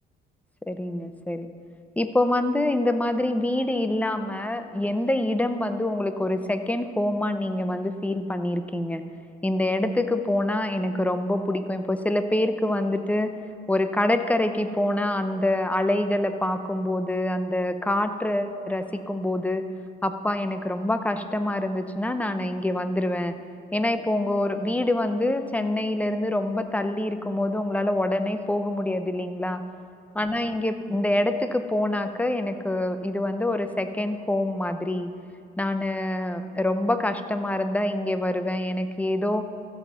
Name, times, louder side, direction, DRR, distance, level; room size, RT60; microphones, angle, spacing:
voice 1, 0.7-1.5 2.0-9.0 9.4-13.3 13.7-19.6 20.0-23.4 23.7-29.6 30.1-35.1 35.6-39.5, left 1 dB, 5° left, 9 dB, 0.7 m, -26 dB
15.0 x 5.6 x 7.0 m, 2.4 s
cardioid pair, 90°, 20 cm